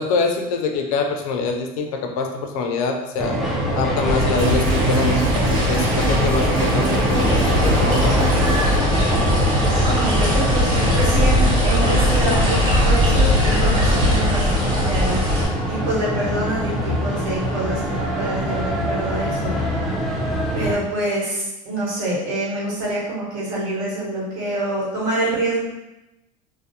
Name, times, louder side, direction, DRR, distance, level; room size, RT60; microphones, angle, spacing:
voice 1, 0.0-3.4 3.7-8.3, left 4 dB, 80° left, 4 dB, 0.4 m, -25 dB
sound 1, 3.2-20.7, equal, ahead, 0.5 m, -24 dB
sound 2, 4.1-15.5, left 1 dB, 25° right, 1.1 m, -20 dB
sound 3, 4.4-8.8, right 4 dB, 55° right, 0.4 m, -26 dB
voice 2, 9.7-15.2 15.7-19.8 20.5-25.6, right 1 dB, 70° right, -6 dB, 1.2 m, -26 dB
2.5 x 2.0 x 2.7 m, 0.96 s
supercardioid pair, 120°, 18 cm